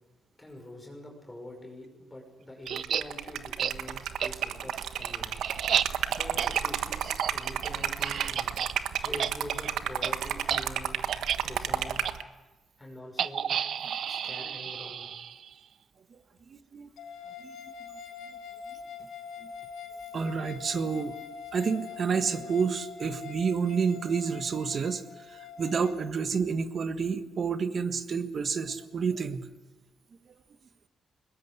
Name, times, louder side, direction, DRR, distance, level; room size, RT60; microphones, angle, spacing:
voice 1, 0.4-5.4 6.1-8.6 9.0-11.1 11.4-12.1 12.8-13.5 14.1-15.1, left 1 dB, 15° left, 0 dB, 6.0 m, -45 dB
sound 1, 2.7-3.0 3.6-3.7 4.2-4.3 4.7-8.7 9.0-9.3 9.6-9.7 10.0-10.1 10.5-10.6 11.1-11.4 12.0-12.1 13.2-15.5, right 8 dB, 65° right, 0.7 m, -31 dB
Liquid, 2.7-12.2, right 9 dB, 85° right, 1.3 m, -32 dB
voice 2, 16.5-16.9 17.4-17.5 20.1-21.2 21.5-29.5, right 5 dB, 45° right, 10 dB, 1.5 m, -29 dB
sound 2, 17.0-26.0, left 6 dB, 80° left, 4.3 m, -43 dB
22.0 x 20.0 x 8.2 m, 1.1 s
cardioid pair, 100°, 0 cm